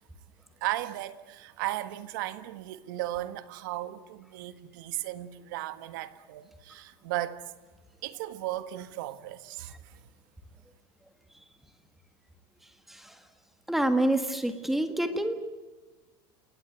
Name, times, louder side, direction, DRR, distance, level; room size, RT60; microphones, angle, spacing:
voice 1, 0.6-7.4 8.0-9.7, right 15 dB, 65° right, 1.6 m, -35 dB
voice 2, 13.7-15.3, right 1 dB, ahead, 1.7 m, -27 dB
29.5 x 18.5 x 9.3 m
supercardioid pair, 175°, 12 cm